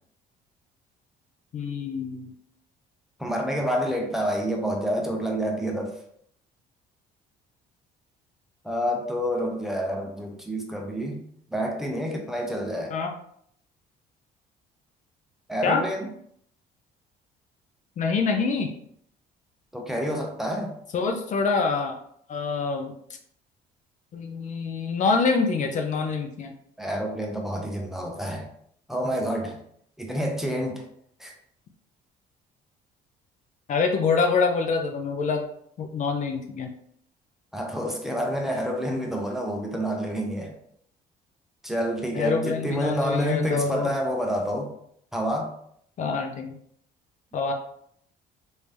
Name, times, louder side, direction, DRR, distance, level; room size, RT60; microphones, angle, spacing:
voice 1, 1.5-2.3 12.9-13.1 15.6-15.8 18.0-18.7 20.9-22.0 22.3-22.9 24.1-26.5 33.7-35.4 35.8-36.7 42.2-43.9 46.0-46.6 47.3-47.5, left 4 dB, 45° left, 4 dB, 0.5 m, -25 dB
voice 2, 3.2-6.0 8.6-11.2 11.5-13.0 15.5-16.1 19.7-20.7 26.8-28.5 28.9-29.6 30.0-30.9 31.2-31.3 37.5-40.5 41.6-44.7 45.1-45.5, equal, ahead, 1 dB, 0.6 m, -28 dB
3.3 x 2.7 x 3.2 m, 0.67 s
cardioid pair, 110°, 17 cm